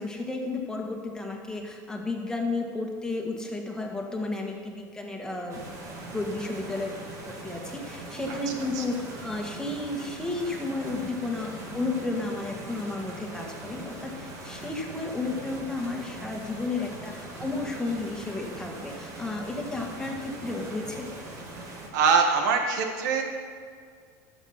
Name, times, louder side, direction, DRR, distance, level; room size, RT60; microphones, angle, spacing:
voice 1, 0.0-21.1, left 2 dB, 5° left, 1 dB, 1.7 m, -33 dB
sound 1, 5.5-21.9, right 2 dB, 35° right, 2.7 m, -41 dB
voice 2, 21.9-23.2, right 5 dB, 80° right, 4 dB, 1.8 m, -23 dB
13.5 x 7.2 x 5.8 m, 2.1 s
supercardioid pair, 135°, 10 cm